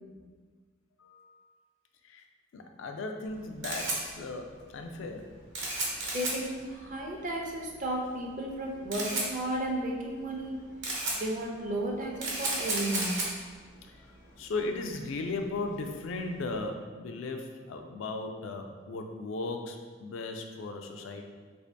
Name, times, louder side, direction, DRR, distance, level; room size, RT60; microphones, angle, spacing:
voice 1, 1.0-1.4 2.0-2.2 2.5-5.3 6.9-7.0 13.9-14.0 14.4-21.2, left 3 dB, 75° left, 4 dB, 0.3 m, -37 dB
Camera, 3.2-16.6, right 2 dB, 65° right, 0.9 m, -36 dB
voice 2, 6.1-10.5 11.1-13.2, right 1 dB, 40° right, -1 dB, 0.5 m, -33 dB
2.9 x 2.7 x 3.3 m, 1.5 s
head